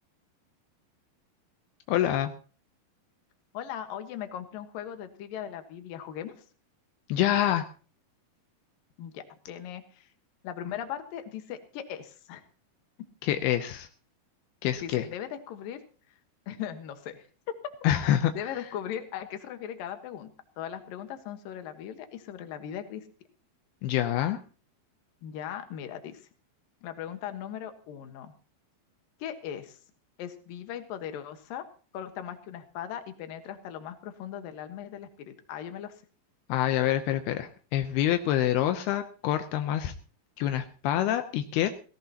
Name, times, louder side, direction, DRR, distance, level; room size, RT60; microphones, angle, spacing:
voice 1, 1.9-2.3 7.1-7.7 13.2-13.9 14.6-15.1 17.8-18.3 23.8-24.4 36.5-39.9 40.4-41.7, left 12 dB, 85° left, 8 dB, 2.8 m, -26 dB
voice 2, 3.5-6.4 9.0-10.1 10.4-12.4 13.0-13.1 14.8-15.8 16.5-17.2 18.3-20.3 20.6-23.0 25.2-26.2 26.8-28.3 29.2-29.8 30.2-31.6 31.9-35.9, left 10 dB, 70° left, 8 dB, 2.9 m, -38 dB
17.5 x 17.5 x 2.9 m, 0.39 s
omnidirectional pair, 4.5 m